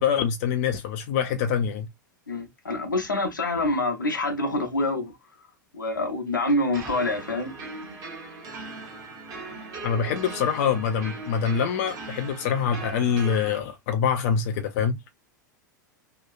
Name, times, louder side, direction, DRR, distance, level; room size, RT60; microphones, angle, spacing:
voice 1, 0.0-1.9 9.8-15.0, left 7 dB, 50° left, 0.4 m, -25 dB
voice 2, 2.3-5.1 5.7-7.5, left 2 dB, 80° left, 0.7 m, -26 dB
sound 1, 6.7-13.6, right 3 dB, 35° right, 0.9 m, -39 dB
2.9 x 2.2 x 2.3 m
figure-of-eight pair, 90°, 10 cm